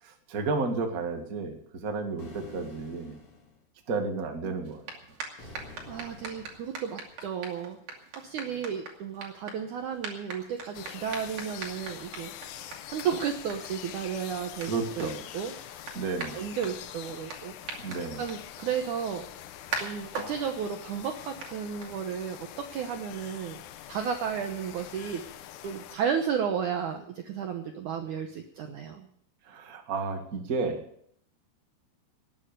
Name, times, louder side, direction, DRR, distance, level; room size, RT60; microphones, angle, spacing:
voice 1, 0.0-3.2 3.9-4.8 14.6-15.2 15.9-16.4 17.8-18.2 29.5-30.8, right 4 dB, 35° right, 4 dB, 1.5 m, -32 dB
sound 1, 2.2-3.6 5.4-6.8, left 3 dB, 40° left, 3.0 m, -48 dB
sound 2, 4.6-22.4, right 4 dB, 55° right, 3.7 m, -43 dB
voice 2, 5.9-7.8 8.2-12.3 12.9-15.5 16.3-17.8 18.1-19.3 19.8-23.6 23.9-25.2 25.6-29.1, right 7 dB, 70° right, 5 dB, 2.0 m, -33 dB
sound 3, 10.7-26.0, left 12 dB, 85° left, 3.0 m, -44 dB
19.0 x 9.1 x 6.8 m, 0.66 s
omnidirectional pair, 4.7 m